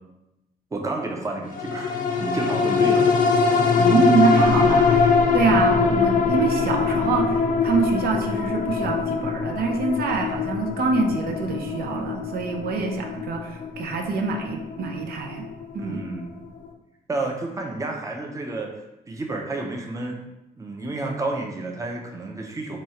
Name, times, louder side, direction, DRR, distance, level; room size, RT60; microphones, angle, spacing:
voice 1, 0.7-1.9 2.2-3.1 3.8-4.1 5.4-5.7 15.8-16.3 17.1-18.7 19.1-20.2 20.6-22.8, right 2 dB, 20° right, 1 dB, 0.6 m, -30 dB
sound 1, 1.5-16.2 16.6-16.7, left 5 dB, 60° left, 0.5 m, -22 dB
voice 2, 3.8-15.5 15.7-16.0, right 4 dB, 75° right, 3 dB, 0.5 m, -25 dB
3.0 x 2.3 x 4.2 m, 0.94 s
cardioid pair, 105°, 16 cm